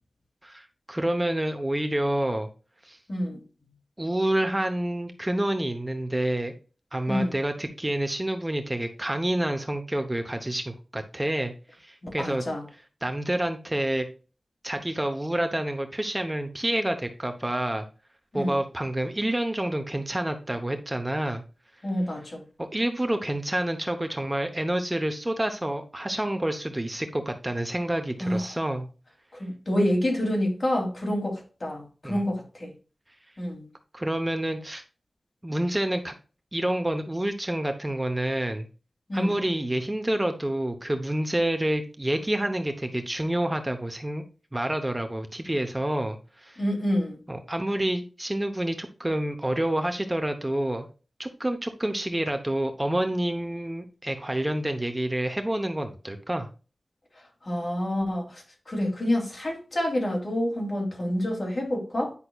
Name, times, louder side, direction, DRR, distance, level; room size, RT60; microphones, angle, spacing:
voice 1, 0.4-2.5 2.8-3.0 4.0-6.5 6.9-11.5 11.8-12.5 13.0-14.1 14.6-17.9 18.3-21.4 22.6-28.9 32.0-32.2 33.9-34.8 35.4-36.1 36.5-38.7 39.1-44.2 44.5-46.6 47.3-50.9 51.2-56.5, right 1 dB, 20° right, 0.8 m, -28 dB
voice 2, 3.1-3.4 7.1-7.3 12.2-12.6 18.3-18.6 21.8-22.4 28.2-28.4 29.4-32.7 33.4-33.7 39.1-39.4 46.6-47.2 57.4-62.1, left 1 dB, 45° left, 2.8 m, -28 dB
9.8 x 5.7 x 2.3 m
wide cardioid pair, 95°, 0 cm